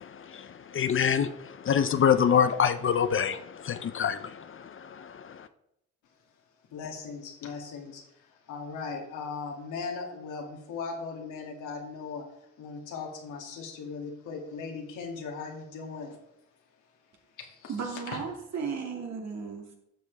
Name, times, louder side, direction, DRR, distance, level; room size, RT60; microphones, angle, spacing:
voice 1, 0.0-5.5, left 7 dB, 45° left, 0.6 m, -26 dB
voice 2, 6.7-12.3 12.6-16.2 17.4-17.7 18.1-18.2, left 5 dB, 90° left, 2.5 m, -38 dB
voice 3, 17.7-19.7, right 5 dB, 65° right, 2.4 m, -35 dB
12.0 x 7.2 x 3.5 m
cardioid pair, 90°, 30 cm